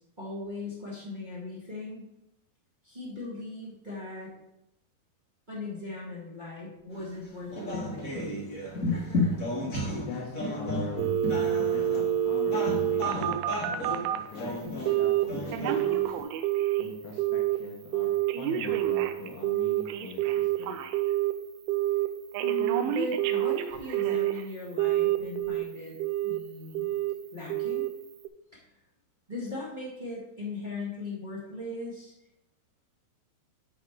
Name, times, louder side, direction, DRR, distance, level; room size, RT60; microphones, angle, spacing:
voice 1, 0.0-2.1 2.8-4.3 5.5-8.1 22.4-26.0 26.2-26.9 27.3-27.9 29.3-32.1, left 2 dB, 35° right, -7 dB, 0.7 m, -38 dB
sound 1, 6.9-16.2, left 1 dB, 50° left, 1.0 m, -33 dB
voice 2, 10.0-11.2 11.5-16.1 16.8-20.8, left 3 dB, 90° left, -2 dB, 3.2 m, -43 dB
Telephone, 11.0-14.3 14.9-15.2 15.5-16.9 17.2-17.6 17.9-21.3 21.7-22.1 22.3-24.4 24.8-25.6 26.0-26.4 26.8-27.1 27.5-27.9 28.3-28.4, right 12 dB, 85° right, 2.4 m, -27 dB
11.0 x 3.6 x 4.7 m, 0.86 s
omnidirectional pair, 4.5 m